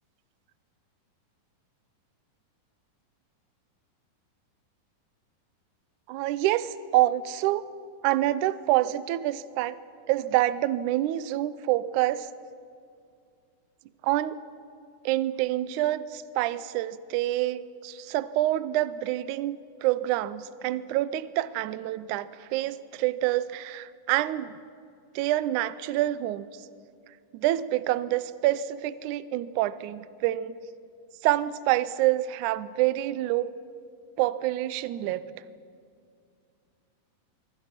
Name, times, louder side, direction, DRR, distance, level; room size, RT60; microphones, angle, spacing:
voice 1, 6.1-7.6 8.0-9.8 10.1-12.3 14.0-14.4 15.1-24.6 25.2-26.5 27.3-30.6 31.2-33.5 34.2-35.3, right 15 dB, 75° right, 15 dB, 1.9 m, -27 dB
25.0 x 24.0 x 5.9 m, 2.3 s
omnidirectional pair, 4.1 m